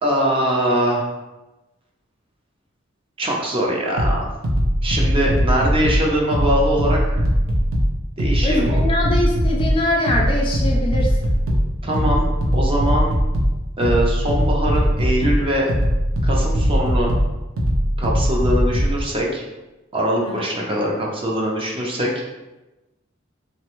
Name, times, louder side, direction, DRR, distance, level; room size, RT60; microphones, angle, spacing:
voice 1, 0.0-1.1 3.2-4.3 4.8-7.2 8.2-8.8 11.8-13.2 13.8-15.7 16.2-17.1 18.0-19.4 19.9-22.1, equal, 25° right, -2 dB, 0.5 m, -22 dB
sound 1, 4.0-19.0, equal, 80° right, 0.6 m, -20 dB
voice 2, 8.4-11.2 20.2-20.4, left 1 dB, 25° left, -1 dB, 0.4 m, -23 dB
3.2 x 2.2 x 2.9 m, 1.0 s
head